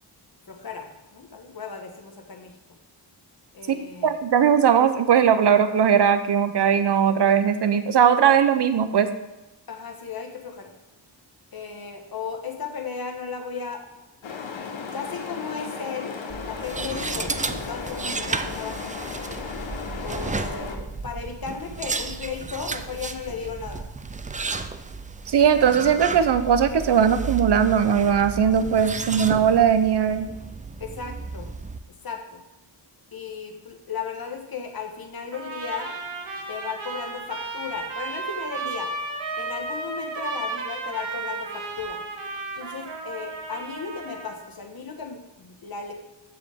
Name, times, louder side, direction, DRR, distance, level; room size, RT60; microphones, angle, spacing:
voice 1, 0.5-2.6 3.5-4.1 9.7-10.7 11.5-13.8 14.9-16.2 16.5-18.9 20.0-23.9 30.8-31.5 32.0-32.4 33.1-35.9 36.5-38.9 39.4-42.0 42.5-45.9, left 5 dB, 50° left, 3 dB, 1.3 m, -35 dB
voice 2, 3.7-9.1 25.3-30.3, right 8 dB, 60° right, 10 dB, 0.7 m, -19 dB
sound 1, 14.2-20.8, left 5 dB, 70° left, 1.1 m, -35 dB
sound 2, 16.3-31.8, right 4 dB, 20° right, 0.3 m, -33 dB
Trumpet, 35.3-44.4, right 3 dB, 85° right, 1.6 m, -33 dB
14.5 x 5.1 x 3.5 m, 1.0 s
wide cardioid pair, 130°, 47 cm